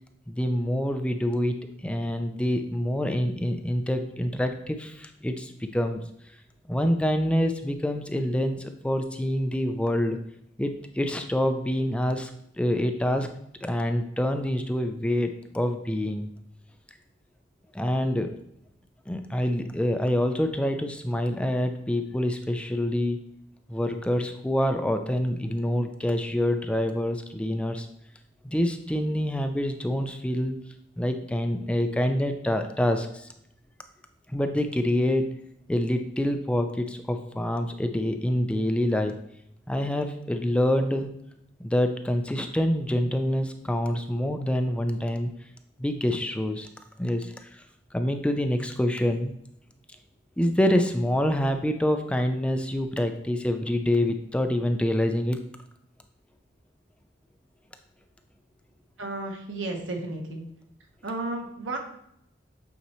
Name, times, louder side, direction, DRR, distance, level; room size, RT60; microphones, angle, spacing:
voice 1, 0.3-6.1 6.7-10.2 10.6-12.3 12.6-13.3 13.6-16.3 17.7-18.3 19.1-23.2 23.7-27.9 28.4-30.6 31.0-33.3 34.3-35.4 35.7-39.1 39.7-41.1 41.6-45.3 45.8-46.7 47.0-47.6 47.9-49.3 50.4-55.4, left 1 dB, 5° left, 6 dB, 0.4 m, -26 dB
voice 2, 59.0-60.5 61.0-61.8, right 2 dB, 85° right, 2 dB, 1.2 m, -33 dB
8.2 x 4.2 x 3.1 m, 0.74 s
head